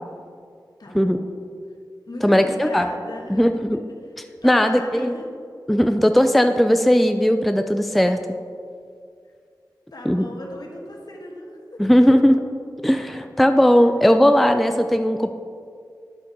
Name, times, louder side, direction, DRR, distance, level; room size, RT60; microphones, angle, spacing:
voice 1, 0.8-1.4 2.0-4.1 4.4-5.4 9.9-12.1 13.7-13.9, left 1 dB, 60° left, 0 dB, 1.3 m, -38 dB
voice 2, 2.2-2.9 3.3-3.8 4.4-5.1 5.7-8.2 10.1-10.2 11.8-12.4 12.8-15.3, equal, ahead, 7 dB, 0.3 m, -17 dB
11.0 x 4.3 x 4.4 m, 2.2 s
wide cardioid pair, 55°, 8 cm